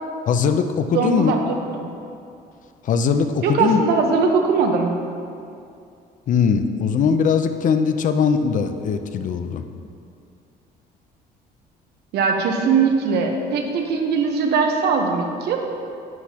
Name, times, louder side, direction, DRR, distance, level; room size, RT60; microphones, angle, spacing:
voice 1, 0.3-1.3 2.8-3.8 6.3-9.6, left 6 dB, 50° left, 8 dB, 0.6 m, -20 dB
voice 2, 0.9-1.9 3.4-4.9 12.1-15.6, right 5 dB, 75° right, 3 dB, 1.1 m, -20 dB
11.0 x 8.2 x 2.9 m, 2.5 s
cardioid pair, 110°, 17 cm